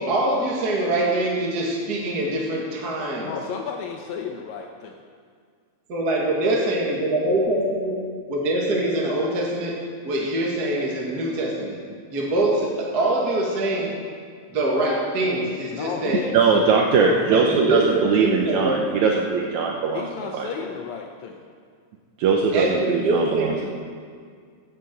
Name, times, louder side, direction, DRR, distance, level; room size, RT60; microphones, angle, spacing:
voice 1, 0.0-3.3 5.9-8.0 8.3-9.8 10.0-11.8 12.1-13.9 14.5-16.4 17.3-18.8 22.5-23.7, right 1 dB, 35° right, -2 dB, 2.1 m, -24 dB
voice 2, 3.2-5.0 15.7-17.4 19.9-21.5, left 6 dB, 75° left, 2 dB, 2.1 m, -33 dB
voice 3, 16.3-20.1 20.3-20.5 22.2-23.7, right 5 dB, 80° right, 0 dB, 2.3 m, -21 dB
15.5 x 7.5 x 8.1 m, 2.1 s
omnidirectional pair, 3.3 m